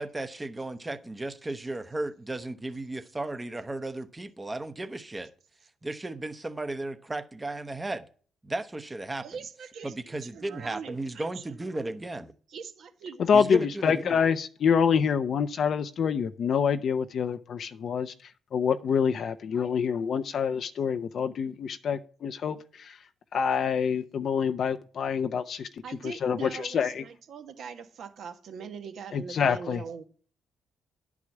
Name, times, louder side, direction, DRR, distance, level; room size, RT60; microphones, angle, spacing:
voice 1, 0.0-5.3 5.8-8.1 8.4-9.3 9.8-12.3 13.3-14.2, right 2 dB, 15° right, 0.9 m, -35 dB
voice 2, 9.2-9.9 10.2-11.4 12.5-13.2 25.8-30.0, right 6 dB, 65° right, 1.5 m, -41 dB
voice 3, 13.2-18.1 18.5-23.0 23.3-27.0 29.1-29.8, left 7 dB, 60° left, 0.6 m, -26 dB
10.5 x 4.8 x 7.2 m
cardioid pair, 90°, 0 cm